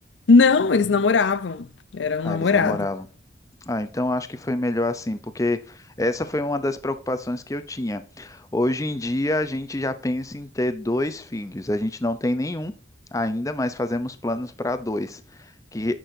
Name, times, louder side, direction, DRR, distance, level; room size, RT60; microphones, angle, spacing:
voice 1, 0.3-1.7 1.9-2.9, left 4 dB, 75° left, 0.5 m, -19 dB
voice 2, 2.2-3.1 3.7-12.7 13.1-16.0, left 1 dB, 15° left, 0.6 m, -27 dB
10.0 x 6.3 x 2.7 m
head